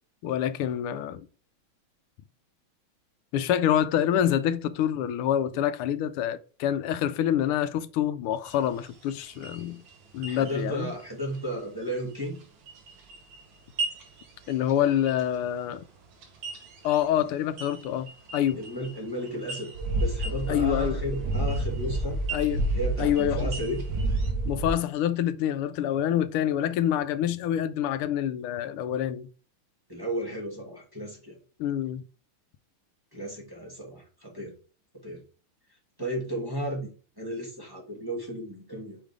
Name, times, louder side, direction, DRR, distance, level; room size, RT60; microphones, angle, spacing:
voice 1, 0.2-1.3 3.3-9.8 10.1-10.9 14.5-15.8 16.8-18.6 20.5-21.0 22.3-22.6 23.0-23.5 24.4-29.3 31.6-32.0, left 10 dB, 85° left, 1.5 m, -26 dB
sound 1, 8.4-24.3, right 4 dB, 70° right, 2.3 m, -43 dB
voice 2, 10.3-12.4 18.6-22.2 22.7-23.8 29.9-31.4 33.1-34.5 35.0-35.2 36.0-39.0, right 1 dB, 10° right, 1.7 m, -34 dB
sound 2, 19.7-24.7, right 1 dB, 50° right, 1.8 m, -29 dB
5.5 x 5.0 x 3.6 m
omnidirectional pair, 2.4 m